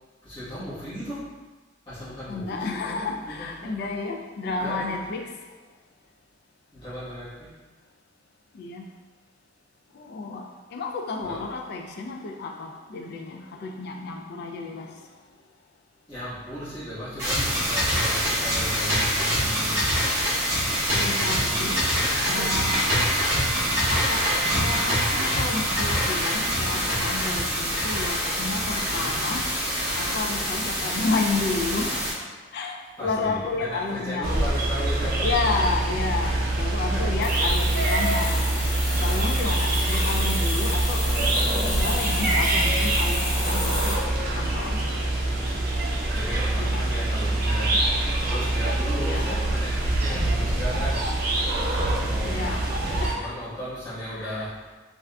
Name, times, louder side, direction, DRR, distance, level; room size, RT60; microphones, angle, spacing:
voice 1, 0.2-1.2 1.9-3.9 4.4-5.0 6.7-7.3 11.2-11.4 16.1-20.1 21.1-22.5 22.8-23.2 28.9-29.2 33.0-35.4 36.2-36.5 36.9-37.0 46.1-47.8 48.2-51.0 52.1-54.5, equal, 25° left, -15 dB, 1.1 m, -36 dB
voice 2, 2.3-5.3 8.5-8.9 10.0-10.5 10.7-14.9 20.9-21.8 22.2-22.8 23.9-24.2 24.5-29.5 30.0-32.0 32.5-34.4 35.2-38.5 39.0-41.3 41.5-44.0 44.3-44.9 46.6-46.9 49.0-49.4 52.2-52.7 53.0-53.3 54.1-54.5, left 3 dB, 55° left, 3 dB, 0.3 m, -31 dB
sound 1, 17.2-32.1, equal, 15° right, 0.9 m, -25 dB
sound 2, 34.2-53.1, right 2 dB, 50° right, 0.5 m, -24 dB
sound 3, 37.2-43.9, left 1 dB, 85° left, 0.9 m, -32 dB
3.5 x 2.4 x 2.2 m, 1.3 s
head